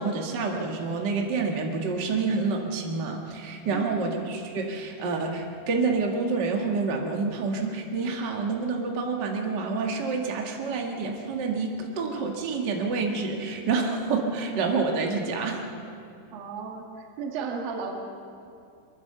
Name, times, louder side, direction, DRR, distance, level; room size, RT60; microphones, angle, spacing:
voice 1, 0.0-15.6, right 4 dB, 75° right, 1 dB, 0.9 m, -28 dB
voice 2, 16.3-18.0, right 5 dB, 60° right, 0 dB, 3.4 m, -34 dB
24.0 x 22.0 x 6.9 m, 2.5 s
omnidirectional pair, 5.3 m